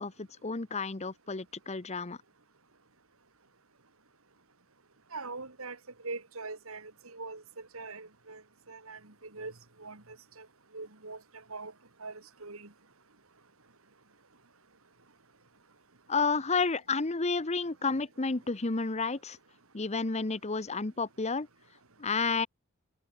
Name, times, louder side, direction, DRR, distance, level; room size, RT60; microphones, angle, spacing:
voice 1, 0.0-2.2 16.1-19.4 19.7-21.5 22.0-22.5, left 4 dB, 30° left, 0.9 m, -31 dB
voice 2, 5.1-5.8 6.0-7.4 7.7-8.4 8.7-9.0 9.3-9.5 9.8-10.0 10.4-10.5 10.7-11.2 11.5-11.7 12.0-12.1 12.4-12.7, right 3 dB, 65° right, 2.7 m, -41 dB
head